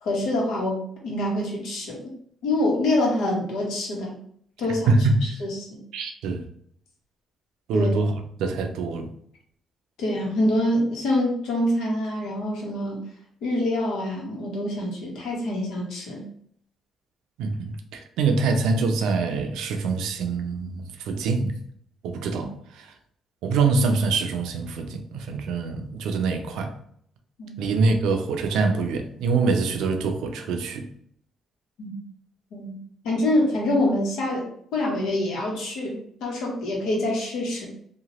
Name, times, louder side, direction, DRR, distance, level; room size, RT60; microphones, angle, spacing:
voice 1, 0.0-2.0 2.4-4.1 4.6-4.9 5.4-5.7 7.7-7.9 10.0-13.0 13.4-16.2 27.4-27.6 31.8-32.0 32.5-32.8 33.0-37.7, left 1 dB, 85° left, 0.9 m, -25 dB
voice 2, 4.9-5.3 5.9-6.4 7.7-8.1 8.4-9.1 17.4-21.6 22.0-22.5 22.8-22.9 23.4-26.7 27.6-30.9, right 4 dB, 90° right, 0.4 m, -24 dB
2.8 x 2.2 x 2.9 m
cardioid pair, 90°, 0 cm